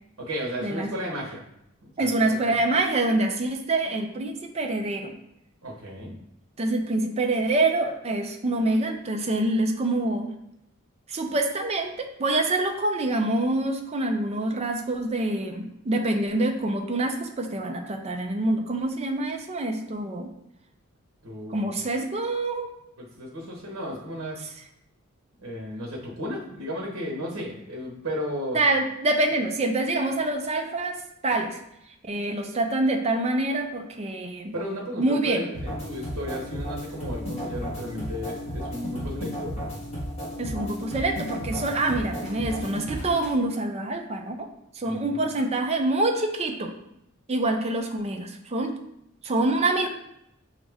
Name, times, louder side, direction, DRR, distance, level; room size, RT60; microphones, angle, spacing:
voice 1, 0.2-1.4 1.8-2.1 2.4-2.6 5.6-6.2 21.2-21.7 23.0-24.4 25.4-28.6 34.5-39.5 44.8-45.2, equal, 70° right, -2 dB, 1.0 m, -34 dB
voice 2, 2.0-5.1 6.6-10.3 11.1-20.3 21.5-22.7 28.5-31.0 31.2-31.6 32.0-34.5 35.0-35.4 40.4-44.5 44.7-46.7 47.3-48.7 49.2-49.9, right 2 dB, 30° right, 3 dB, 0.5 m, -26 dB
sound 1, 35.5-43.3, equal, 30° left, 1.5 m, -34 dB
6.2 x 2.5 x 3.4 m, 0.79 s
head